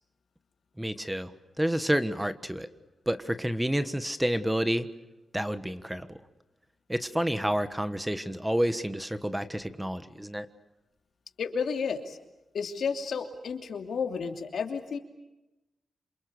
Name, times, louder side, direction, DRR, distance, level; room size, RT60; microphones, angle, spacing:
voice 1, 0.8-1.3 1.6-2.7 3.1-4.9 5.3-6.2 6.9-10.5, equal, 5° right, 11 dB, 1.3 m, -29 dB
voice 2, 11.4-12.2 12.5-15.0, left 5 dB, 80° left, 5 dB, 2.9 m, -32 dB
28.0 x 27.5 x 6.9 m, 0.97 s
wide cardioid pair, 110°, 0 cm